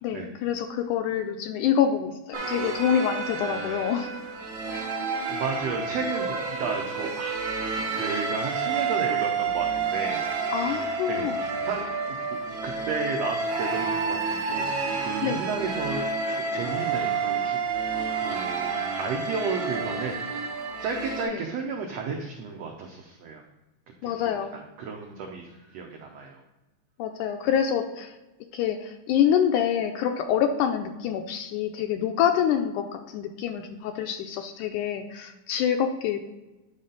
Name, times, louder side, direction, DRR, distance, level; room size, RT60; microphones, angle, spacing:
voice 1, 0.0-4.1 10.5-11.4 15.2-15.4 21.3-21.4 24.0-24.5 27.0-28.1 28.5-36.3, left 9 dB, 80° left, 6 dB, 1.9 m, -26 dB
sound 1, 2.3-21.2, right 4 dB, 55° right, 1.5 m, -29 dB
voice 2, 5.2-7.5 7.8-10.2 11.1-11.9 12.3-17.6 18.1-18.7 19.0-20.4 20.8-23.4 24.0-26.4, right 5 dB, 85° right, 1 dB, 1.4 m, -33 dB
9.5 x 4.1 x 3.8 m, 1.0 s
omnidirectional pair, 3.9 m